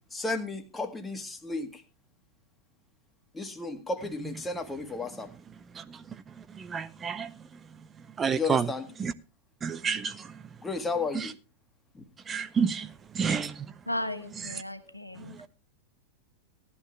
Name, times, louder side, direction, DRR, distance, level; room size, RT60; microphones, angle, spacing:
voice 1, 0.1-1.8 3.3-5.3 8.3-8.8 10.6-11.3 12.0-12.1, left 3 dB, 10° left, 1.8 m, -33 dB
voice 2, 5.7-6.2 6.5-7.3 8.2-8.7 9.0-9.1 9.6-10.3 11.1-11.3 12.3-13.7 15.3-15.5, right 6 dB, 20° right, 0.6 m, -30 dB
voice 3, 13.9-15.5, left 1 dB, 90° left, 1.4 m, -35 dB
16.0 x 11.0 x 3.2 m
figure-of-eight pair, 90°, 0 cm